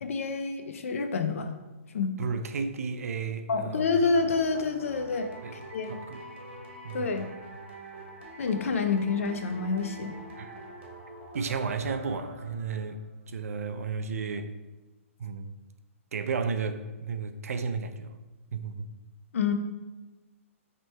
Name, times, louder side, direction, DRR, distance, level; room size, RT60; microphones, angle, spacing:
voice 1, 0.0-1.5 1.9-2.2 3.5-6.0 6.9-7.3 8.4-10.1 19.3-19.5, left 4 dB, 70° left, 0.5 m, -28 dB
voice 2, 2.2-3.9 5.4-5.5 5.9-6.2 6.8-7.2 10.4-10.5 11.3-13.0 13.3-14.5 15.2-15.5 16.1-18.2 18.5-18.9, right 5 dB, 85° right, 0.4 m, -33 dB
sound 1, 4.0-12.9, equal, 50° right, 1.0 m, -45 dB
4.4 x 2.9 x 3.2 m
hypercardioid pair, 170°, 8 cm